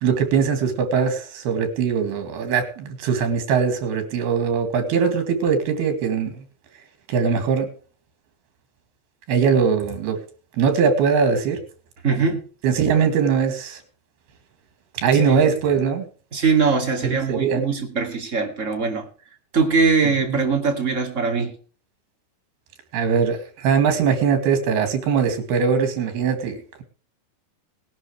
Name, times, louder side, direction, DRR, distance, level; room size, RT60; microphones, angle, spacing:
voice 1, 0.0-6.4 7.1-7.7 9.3-10.2 10.6-11.6 12.6-13.8 14.9-16.1 17.0-17.6 20.3-20.4 22.9-26.8, right 6 dB, 80° right, 7 dB, 4.3 m, -21 dB
voice 2, 12.0-12.4 15.2-15.5 16.3-19.1 19.5-21.5, right 5 dB, 25° right, 2 dB, 2.2 m, -21 dB
20.5 x 11.0 x 3.3 m, 0.41 s
omnidirectional pair, 4.5 m